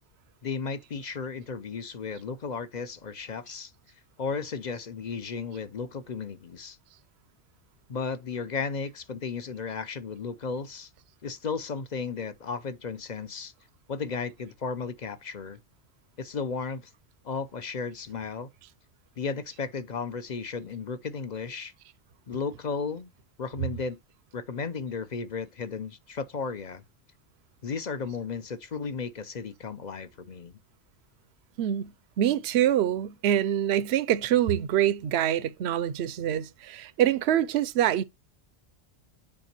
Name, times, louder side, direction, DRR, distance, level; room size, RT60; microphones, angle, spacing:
voice 1, 0.4-3.7 4.2-6.8 7.9-10.9 11.2-13.5 13.9-15.6 16.2-16.9 17.2-18.5 19.2-21.7 22.3-23.1 23.4-24.0 24.3-26.8 27.6-30.5, left 5 dB, 45° left, 0.7 m, -34 dB
voice 2, 31.6-38.0, right 11 dB, 75° right, 0.9 m, -25 dB
8.7 x 5.1 x 2.9 m
omnidirectional pair, 1.1 m